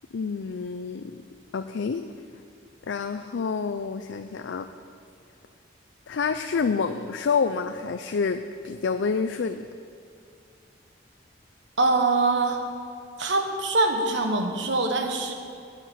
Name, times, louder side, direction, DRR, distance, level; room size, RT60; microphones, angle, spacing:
voice 1, 0.1-1.2 1.5-2.0 2.9-4.7 6.1-9.7, left 5 dB, 80° left, 8 dB, 0.4 m, -28 dB
voice 2, 11.8-12.6 13.2-15.3, right 3 dB, 75° right, 5 dB, 1.3 m, -23 dB
9.9 x 7.1 x 9.2 m, 2.5 s
head